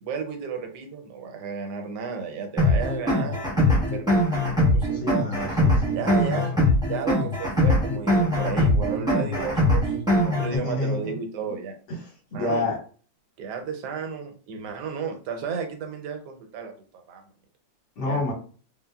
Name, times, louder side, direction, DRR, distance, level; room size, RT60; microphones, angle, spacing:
voice 1, 0.0-5.0 5.9-6.5 6.8-11.8 12.3-12.7 13.4-17.2 18.0-18.2, right 5 dB, 85° right, 4 dB, 1.2 m, -33 dB
sound 1, 2.6-10.6, left 1 dB, 5° right, 0.6 m, -22 dB
voice 2, 4.9-6.7 10.5-11.2 11.5-11.6 12.3-12.8 18.0-18.3, left 2 dB, 85° left, -3 dB, 1.9 m, -29 dB
3.7 x 2.0 x 2.2 m, 0.41 s
omnidirectional pair, 1.8 m